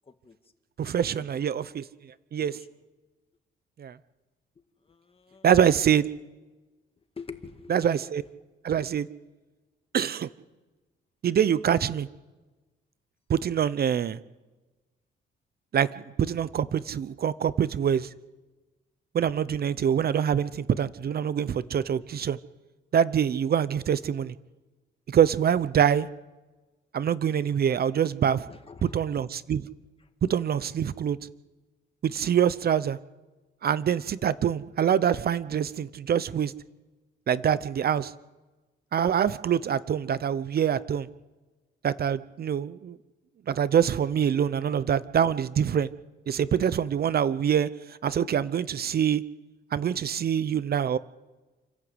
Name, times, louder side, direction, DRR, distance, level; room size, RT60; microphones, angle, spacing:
voice 1, 0.8-2.6 3.8-4.0 5.4-6.1 7.7-8.2 8.6-9.1 9.9-10.3 11.2-12.1 13.3-14.2 15.7-18.1 19.1-22.4 22.9-24.3 25.1-26.1 26.9-28.5 28.8-29.7 30.2-31.2 32.0-33.0 33.6-36.5 37.3-38.1 38.9-41.1 41.8-43.0 43.5-45.9 46.3-49.2 49.7-51.0, right 8 dB, 50° right, 16 dB, 0.8 m, -25 dB
voice 2, 4.9-5.5 7.2-7.7 28.5-28.9, left 5 dB, 30° left, 7 dB, 1.9 m, -45 dB
29.0 x 11.5 x 8.0 m, 1.2 s
cardioid pair, 90°, 20 cm